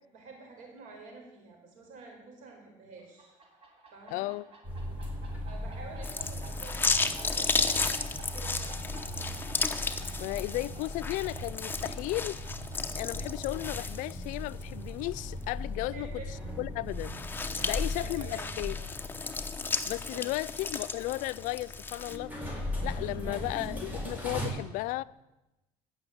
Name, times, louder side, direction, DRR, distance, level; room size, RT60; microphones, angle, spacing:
voice 1, 0.1-3.3 3.9-4.3 5.4-8.9 15.9-16.3 16.9-17.0 17.5-18.9 20.1-20.5 23.2-23.4, right 3 dB, 80° right, 4.4 m, -49 dB
sound 1, 3.0-16.4, right 3 dB, 50° right, 3.1 m, -54 dB
voice 2, 4.1-4.5 10.2-12.4 13.0-16.1 16.6-17.1 17.6-18.8 19.9-22.3 22.8-25.0, left 19 dB, 85° left, 0.4 m, -34 dB
sound 2, 4.6-24.5, left 1 dB, 15° right, 4.6 m, -39 dB
sound 3, 6.0-14.6 15.1-15.2 16.9-22.2, left 4 dB, 15° left, 0.8 m, -34 dB
16.0 x 6.2 x 7.9 m
cardioid pair, 115°, 13 cm